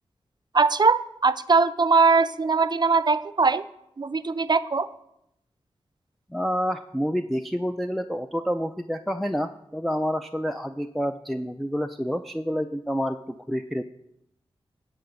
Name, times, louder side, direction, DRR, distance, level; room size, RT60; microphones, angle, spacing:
voice 1, 0.5-3.7 4.0-4.9, right 4 dB, 45° right, 14 dB, 0.6 m, -21 dB
voice 2, 6.3-13.8, equal, ahead, 5 dB, 0.5 m, -28 dB
10.5 x 5.1 x 7.8 m, 0.81 s
cardioid pair, 40°, 10 cm